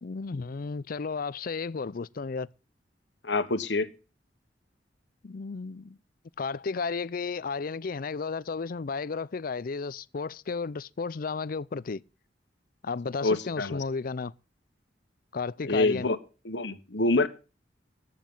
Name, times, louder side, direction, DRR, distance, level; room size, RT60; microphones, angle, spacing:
voice 1, 0.0-2.5 5.2-6.0 6.4-12.0 12.8-14.3 15.3-16.1, left 4 dB, 50° left, 0.5 m, -33 dB
voice 2, 3.2-3.9 13.2-13.8 15.7-16.2 16.4-17.3, left 2 dB, 75° left, 1.3 m, -26 dB
14.5 x 9.4 x 3.9 m
head